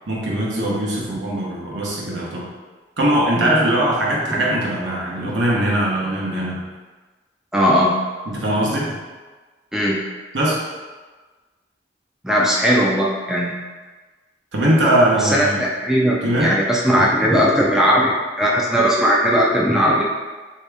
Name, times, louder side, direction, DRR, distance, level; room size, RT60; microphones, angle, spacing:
voice 1, 0.1-2.5 3.0-6.6 8.3-8.9 10.3-10.6 14.5-15.6 16.2-16.6, right 1 dB, 70° right, -4 dB, 0.9 m, -20 dB
voice 2, 7.5-7.9 9.7-10.0 12.2-13.6 15.2-20.0, equal, 5° right, -4 dB, 0.3 m, -18 dB
3.4 x 2.8 x 3.3 m, 1.3 s
head